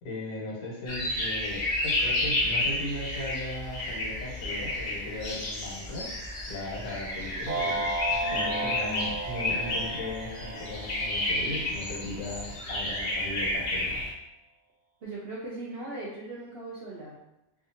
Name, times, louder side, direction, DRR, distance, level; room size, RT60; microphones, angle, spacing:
voice 1, 0.0-6.0 6.5-13.9, left 1 dB, 85° left, -4 dB, 1.3 m, -37 dB
sound 1, 0.9-14.1, left 2 dB, 50° left, 0.5 m, -31 dB
sound 2, 7.5-11.8, right 2 dB, 90° right, 1.1 m, -34 dB
voice 2, 8.2-9.1 15.0-17.2, right 1 dB, 65° right, -5 dB, 0.6 m, -39 dB
2.7 x 2.4 x 2.7 m, 0.91 s
omnidirectional pair, 1.5 m